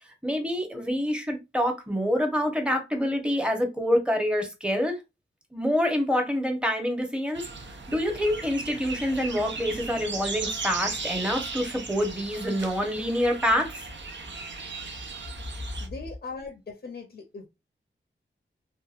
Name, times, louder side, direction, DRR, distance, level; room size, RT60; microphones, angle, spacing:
voice 1, 0.2-5.0 5.5-7.5 7.9-13.9, equal, 5° right, 0.8 m, -26 dB
sound 1, 7.3-15.9, right 3 dB, 65° right, 0.5 m, -37 dB
voice 2, 15.8-17.5, left 4 dB, 55° left, 0.5 m, -39 dB
2.8 x 2.2 x 2.4 m
wide cardioid pair, 60°, 21 cm